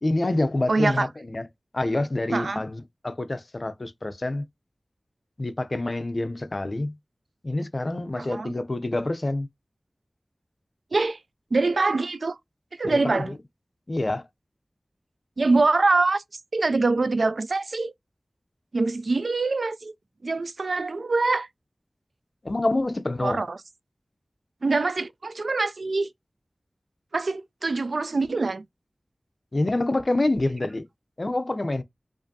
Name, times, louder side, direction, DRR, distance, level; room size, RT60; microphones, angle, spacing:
voice 1, 0.0-1.5 1.7-4.4 5.4-6.9 7.4-9.5 12.8-13.4 13.9-14.3 22.4-23.4 29.5-30.9 31.2-31.8, left 2 dB, 50° left, 0.6 m, -27 dB
voice 2, 0.7-1.1 2.3-2.6 8.2-8.5 10.9-11.2 11.5-12.4 12.8-13.3 15.4-16.2 16.5-17.9 18.7-19.9 20.2-21.5 23.2-23.6 24.6-26.1 27.1-28.6, right 3 dB, 80° right, 0.3 m, -24 dB
4.9 x 2.6 x 2.7 m
wide cardioid pair, 55°, 0 cm